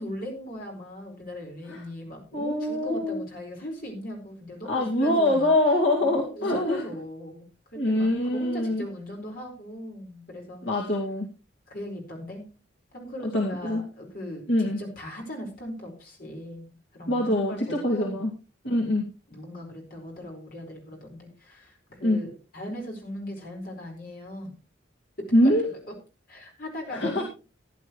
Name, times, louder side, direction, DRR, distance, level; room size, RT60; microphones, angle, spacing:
voice 1, 0.0-5.5 6.0-10.9 11.7-12.5 12.9-18.2 19.3-24.5 25.2-25.5 25.9-26.0 26.3-27.3, equal, 45° left, 0 dB, 4.8 m, -38 dB
voice 2, 2.3-3.2 4.7-6.8 7.7-8.9 10.6-11.3 13.3-13.8 14.5-14.8 17.1-18.3 18.6-19.0 22.0-22.2 25.3-25.6 26.9-27.2, left 1 dB, 65° left, -1 dB, 2.2 m, -24 dB
15.5 x 10.5 x 3.1 m, 0.33 s
head